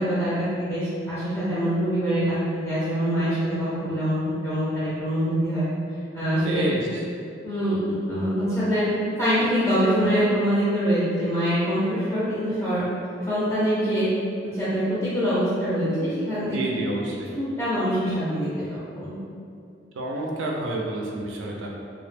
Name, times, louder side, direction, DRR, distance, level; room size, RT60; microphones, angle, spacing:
voice 1, 0.0-2.4 2.6-5.6 6.1-6.7 7.4-7.8 8.1-8.9 9.2-12.8 13.3-14.1 14.4-16.6 17.3-18.6 18.9-19.2, equal, 15° left, -12 dB, 0.5 m, -24 dB
voice 2, 6.4-7.0 16.5-17.3 20.0-21.7, right 1 dB, 90° right, -1 dB, 0.4 m, -29 dB
2.1 x 2.0 x 3.2 m, 2.5 s
head